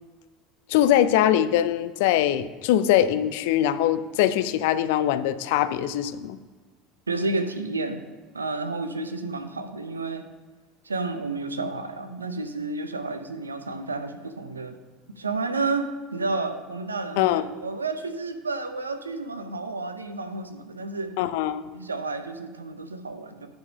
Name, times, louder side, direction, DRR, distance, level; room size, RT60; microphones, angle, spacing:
voice 1, 0.7-6.4 17.2-17.4 21.2-21.6, left 11 dB, 65° left, 13 dB, 0.5 m, -22 dB
voice 2, 7.1-8.0 8.3-10.2 10.8-14.8 15.1-21.1 21.7-23.5, right 3 dB, 90° right, 8 dB, 0.7 m, -31 dB
9.2 x 5.5 x 5.2 m, 1.4 s
figure-of-eight pair, 75°, 0 cm